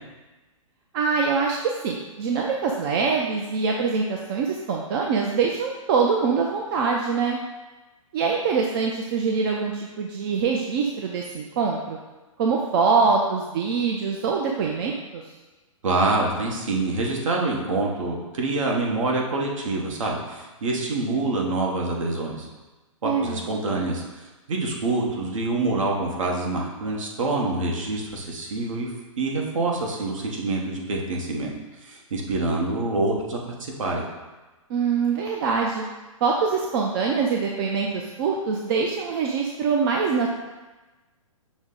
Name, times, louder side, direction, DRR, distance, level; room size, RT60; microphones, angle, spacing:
voice 1, 0.9-7.4 8.1-12.0 12.4-15.2 23.0-23.4 34.7-35.8 36.2-40.3, right 5 dB, 40° right, 0 dB, 0.4 m, -24 dB
voice 2, 15.8-22.5 23.0-31.5 31.8-34.0, right 2 dB, 65° right, -1 dB, 1.0 m, -26 dB
6.1 x 2.1 x 3.7 m, 1.2 s
hypercardioid pair, 130°, 18 cm